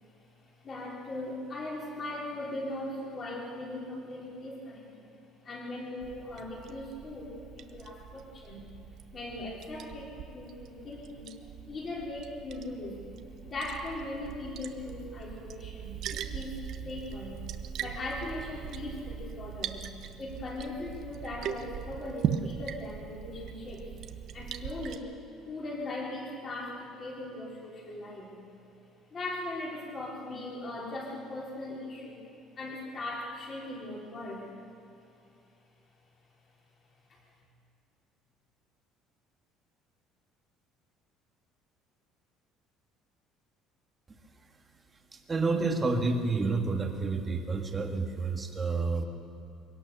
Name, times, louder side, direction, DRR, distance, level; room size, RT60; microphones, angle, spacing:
voice 1, 0.6-5.0 5.4-8.6 9.1-11.3 11.7-13.0 13.4-16.5 16.8-17.4 17.8-19.8 20.2-23.9 24.3-25.1 25.4-28.3 29.1-32.2 32.6-34.5 37.1-37.2, left 2 dB, 25° left, -2 dB, 4.0 m, -39 dB
Liquid, 6.0-25.0, right 9 dB, 45° right, 0.9 m, -40 dB
voice 2, 45.1-49.1, right 3 dB, 15° right, 4 dB, 1.6 m, -29 dB
23.5 x 18.0 x 7.0 m, 2.6 s
cardioid pair, 180°, 0 cm